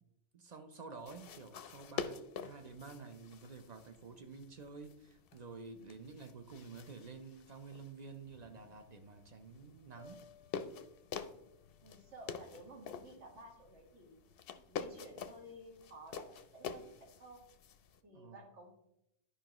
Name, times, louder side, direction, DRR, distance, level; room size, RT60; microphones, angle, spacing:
voice 1, 0.3-10.2 18.1-18.4, right 4 dB, 45° right, 0.6 m, -50 dB
sound 1, 1.0-18.0, left 6 dB, 60° left, 0.7 m, -48 dB
Piano, 10.0-13.9 14.3-14.7, left 2 dB, 25° right, 1.3 m, -64 dB
voice 2, 11.8-14.2 14.6-16.3 16.5-17.4 18.0-18.7, right 1 dB, 70° right, 2.0 m, -54 dB
11.5 x 5.1 x 3.0 m
omnidirectional pair, 1.2 m